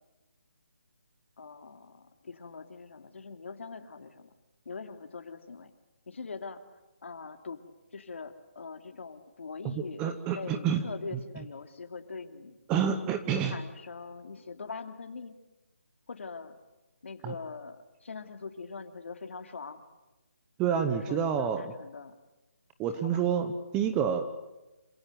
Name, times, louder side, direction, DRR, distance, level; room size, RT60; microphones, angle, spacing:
voice 1, 1.4-4.3 4.6-5.7 6.1-6.6 7.0-7.6 7.9-10.0 10.3-12.6 13.4-15.3 16.1-16.6 17.0-19.8 20.9-22.1 22.9-23.3, left 4 dB, 55° left, 6 dB, 2.7 m, -42 dB
voice 2, 10.0-10.8 11.1-11.2 12.7-13.6 17.2-17.3 20.6-21.6 22.8-24.3, right 8 dB, 10° right, 8 dB, 0.8 m, -28 dB
27.0 x 16.0 x 9.4 m, 1.0 s
hypercardioid pair, 170°, 8 cm